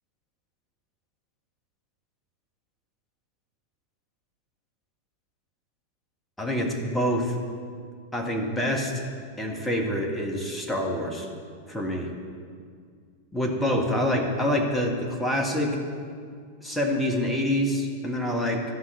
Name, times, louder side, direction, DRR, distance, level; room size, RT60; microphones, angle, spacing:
voice 1, 6.4-7.3 8.1-8.9 9.4-11.3 11.7-12.1 13.3-15.8 16.6-18.6, equal, 5° left, 1 dB, 1.7 m, -26 dB
12.5 x 5.8 x 8.2 m, 2.1 s
figure-of-eight pair, 90°, 0 cm